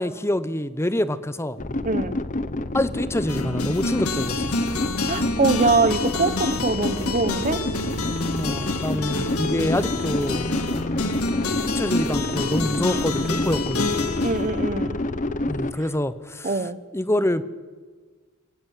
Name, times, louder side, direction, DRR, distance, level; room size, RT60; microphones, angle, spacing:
voice 1, 0.0-1.6 2.7-4.6 8.3-10.5 11.6-14.0 15.5-16.6 16.9-17.4, left 1 dB, 10° left, 14 dB, 0.9 m, -26 dB
sound 1, 1.6-15.7, left 2 dB, 35° left, 1.0 m, -28 dB
voice 2, 1.8-2.2 5.1-7.6 14.2-15.0 16.4-16.8, right 3 dB, 35° right, 14 dB, 1.0 m, -23 dB
sound 2, 3.3-15.6, left 2 dB, 85° left, 2.0 m, -28 dB
24.0 x 18.0 x 8.4 m, 1.5 s
head